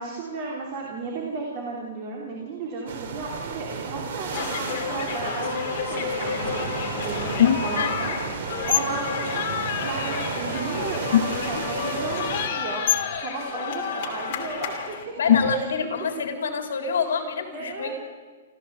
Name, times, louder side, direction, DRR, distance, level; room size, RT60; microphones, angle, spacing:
voice 1, 0.0-8.1 8.7-9.5 9.8-12.8 13.2-15.2 15.4-15.7 16.0-16.1 17.1-17.2 17.5-17.9, right 3 dB, 25° right, -2 dB, 2.9 m, -34 dB
sound 1, 2.9-12.5, right 5 dB, 45° right, 2.8 m, -32 dB
sound 2, 4.3-15.0, left 7 dB, 30° left, 2.8 m, -31 dB
sound 3, 6.4-6.6 7.4-7.9 8.6-9.0 10.6-10.7 10.9-11.7 12.9-13.2 15.3-15.8, left 9 dB, 50° left, 0.8 m, -22 dB
voice 2, 15.2-17.9, left 5 dB, 70° left, 4 dB, 3.8 m, -27 dB
27.0 x 14.0 x 8.0 m, 1.5 s
hypercardioid pair, 180°, 0 cm